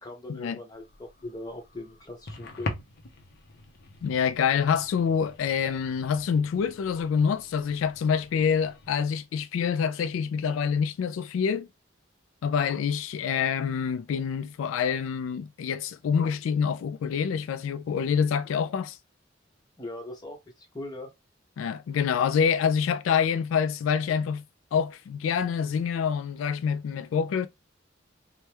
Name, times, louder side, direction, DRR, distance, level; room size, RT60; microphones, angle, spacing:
voice 1, 0.0-2.8 19.8-20.4 20.7-21.1, left 1 dB, 20° left, 0.9 m, -40 dB
sound 1, 0.7-8.9, left 2 dB, 55° left, 0.6 m, -43 dB
voice 2, 4.0-11.7 12.4-19.0 21.6-24.4 24.7-27.5, left 7 dB, 90° left, 0.3 m, -26 dB
3.3 x 2.1 x 2.9 m
head